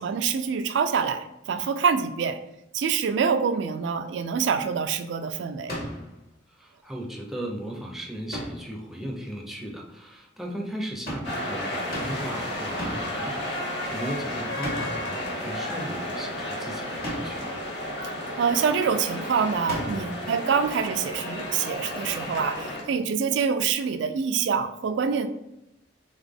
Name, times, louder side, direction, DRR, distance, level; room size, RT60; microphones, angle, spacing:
voice 1, 0.0-2.4 2.7-5.7 18.4-25.3, right 6 dB, 75° right, 8 dB, 0.3 m, -26 dB
sound 1, 5.7-6.1 8.3-8.7 11.1-11.4 11.9-12.3 12.8-13.2 14.6-15.1 17.0-17.5 19.7-20.2, equal, 50° left, 1.4 m, -34 dB
voice 2, 6.5-17.6, right 1 dB, ahead, 0 dB, 0.5 m, -36 dB
sound 2, 11.2-22.8, left 1 dB, 75° left, 1.3 m, -33 dB
4.0 x 3.5 x 3.4 m, 0.87 s
head